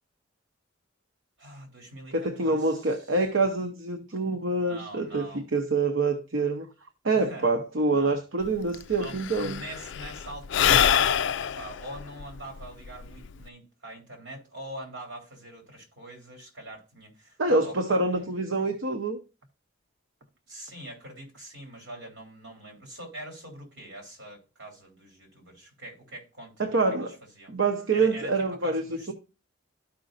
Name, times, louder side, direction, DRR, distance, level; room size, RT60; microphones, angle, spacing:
voice 1, 1.4-3.0 4.6-5.4 7.1-7.5 7.9-8.2 8.9-18.3 20.5-27.5 27.9-29.1, right 1 dB, 60° right, 3.5 m, -43 dB
voice 2, 2.1-6.7 7.0-9.6 17.4-19.2 26.6-27.1 27.5-29.1, right 3 dB, 75° right, 0.8 m, -26 dB
Sigh / Breathing, 8.5-8.6 8.7-13.5, left 9 dB, 65° left, 0.3 m, -25 dB
13.0 x 5.1 x 2.6 m
head